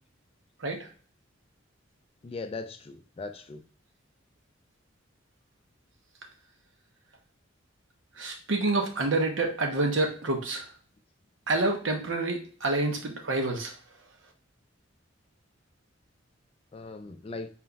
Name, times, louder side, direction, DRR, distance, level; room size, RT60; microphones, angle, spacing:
voice 1, 2.2-3.6 16.7-17.5, left 3 dB, 30° left, 9 dB, 0.3 m, -39 dB
voice 2, 8.2-10.7 11.5-13.7, right 2 dB, 80° right, 3 dB, 0.9 m, -28 dB
4.2 x 2.3 x 3.9 m, 0.42 s
head